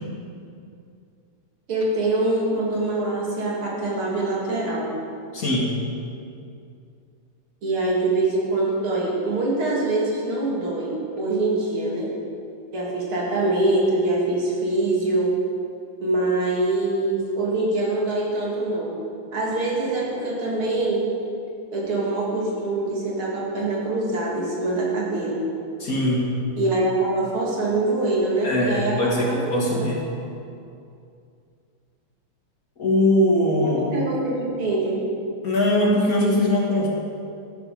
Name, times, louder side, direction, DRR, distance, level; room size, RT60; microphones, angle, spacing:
voice 1, 1.7-5.0 7.6-12.1 12.7-15.4 16.0-18.9 19.3-21.0 21.7-25.4 26.6-29.9 33.6-35.0, right 2 dB, 80° right, -4 dB, 3.6 m, -24 dB
voice 2, 5.3-5.7 25.8-26.3 28.4-30.0 32.8-33.8 35.4-36.9, left 1 dB, 45° left, -3 dB, 2.4 m, -21 dB
13.0 x 12.5 x 5.1 m, 2.5 s
omnidirectional pair, 2.3 m